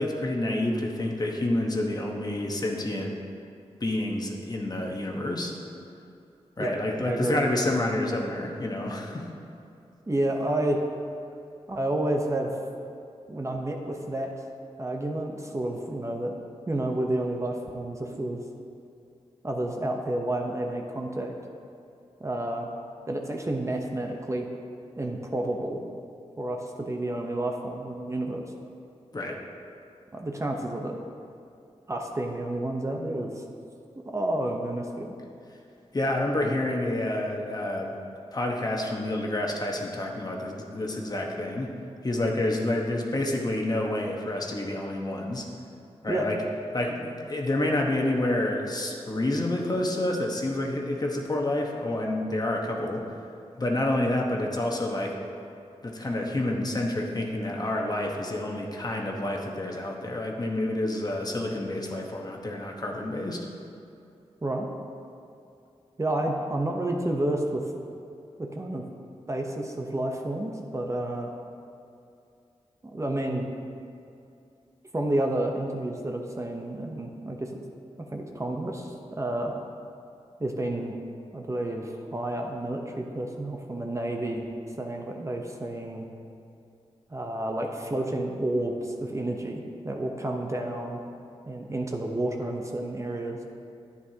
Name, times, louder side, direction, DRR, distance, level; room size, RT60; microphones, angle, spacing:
voice 1, 0.0-3.2 3.8-5.5 6.6-9.3 29.1-29.4 35.9-38.0 38.3-41.7 42.0-45.5 46.0-46.4 46.7-53.1 53.6-55.1 55.8-63.4, left 1 dB, 35° left, 0 dB, 1.1 m, -28 dB
voice 2, 7.0-7.4 10.1-10.8 11.7-12.5 13.3-14.4 14.8-16.3 16.7-18.4 19.4-21.3 22.2-22.7 23.1-24.5 25.0-25.8 26.4-28.4 30.1-31.0 31.9-33.3 34.0-35.1 46.1-46.3 64.4-64.7 66.0-67.6 68.4-68.8 69.3-71.3 72.9-73.5 74.9-77.6 78.0-79.5 80.4-81.0 81.3-84.5 84.8-86.1 87.1-91.0 91.5-93.4, right 1 dB, 25° right, 1 dB, 0.8 m, -30 dB
10.5 x 9.4 x 2.8 m, 2.5 s
wide cardioid pair, 80°, 11 cm